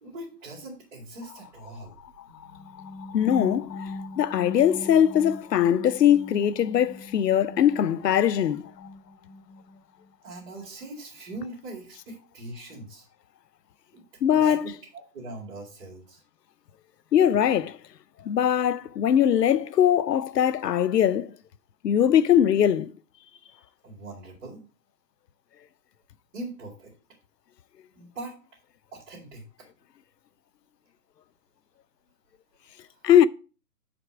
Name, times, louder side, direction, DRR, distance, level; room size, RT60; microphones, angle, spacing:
voice 1, 0.0-2.0 10.2-13.0 13.9-16.2 23.8-24.7 26.3-26.9 28.0-28.4 28.9-29.5, right 2 dB, 50° right, 2.4 m, -41 dB
sound 1, 2.3-10.1, left 2 dB, 15° left, 0.7 m, -41 dB
voice 2, 3.1-8.7 14.2-14.7 17.1-17.8 18.3-21.3 21.8-22.9 33.0-33.3, left 9 dB, 85° left, 0.6 m, -21 dB
5.6 x 5.1 x 4.9 m
hypercardioid pair, 145°, 47 cm